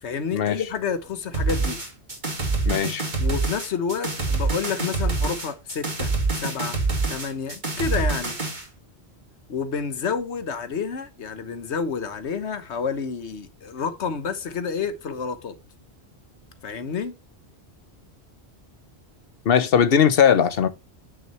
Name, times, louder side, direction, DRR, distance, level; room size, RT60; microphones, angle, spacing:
voice 1, 0.0-1.8 3.2-6.1 6.4-6.8 7.1-8.4 9.5-15.6 16.6-17.2, left 6 dB, 90° left, 1.4 m, -29 dB
sound 1, 1.3-8.6, right 3 dB, 45° right, 2.4 m, -26 dB
voice 2, 2.6-3.0 19.4-20.7, left 8 dB, 60° left, 1.0 m, -19 dB
9.2 x 6.5 x 3.0 m
omnidirectional pair, 1.1 m